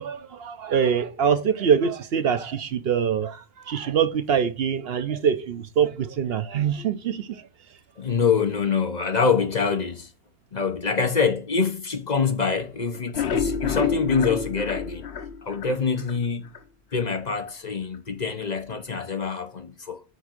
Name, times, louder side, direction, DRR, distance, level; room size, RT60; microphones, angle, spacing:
voice 1, 0.0-7.4, right 7 dB, 65° right, 0.9 m, -24 dB
voice 2, 8.0-10.1 10.5-15.1 15.4-16.5 16.9-20.0, left 5 dB, 40° left, 0.9 m, -25 dB
sound 1, 12.9-16.2 16.5-16.6 17.0-17.1 17.5-17.6, left 6 dB, 70° left, 1.1 m, -28 dB
8.0 x 3.6 x 6.5 m
omnidirectional pair, 1.1 m